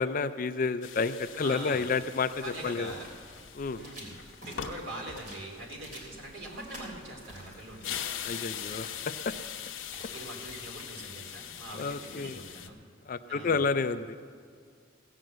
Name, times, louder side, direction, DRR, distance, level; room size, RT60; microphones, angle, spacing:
voice 1, 0.0-2.9 3.5-3.8 8.2-8.9 9.3-9.4 11.7-12.4 13.1-14.2, left 4 dB, 45° left, 11 dB, 0.4 m, -30 dB
sound 1, 0.8-12.7, left 8 dB, 80° left, 0.9 m, -42 dB
voice 2, 1.3-1.9 2.4-3.1 3.7-4.1 4.4-7.9 10.1-12.8 13.3-13.6, right 1 dB, 80° right, 0 dB, 2.9 m, -43 dB
sound 2, 2.2-12.2, equal, 45° right, 3.2 m, -51 dB
16.0 x 7.6 x 7.9 m, 2.2 s
head